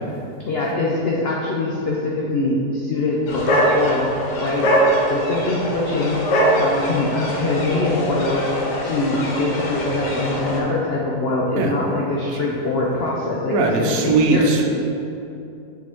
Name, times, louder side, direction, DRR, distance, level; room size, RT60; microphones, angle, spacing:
voice 1, 0.4-4.1 4.4-4.7 5.1-6.2 6.6-8.4 8.8-14.5, left 2 dB, 65° left, -4 dB, 0.6 m, -23 dB
sound 1, 3.3-10.6, equal, 80° left, 1.6 m, -22 dB
voice 2, 13.5-14.6, right 3 dB, 65° right, 2 dB, 1.0 m, -19 dB
6.1 x 5.1 x 3.5 m, 2.7 s
omnidirectional pair, 1.8 m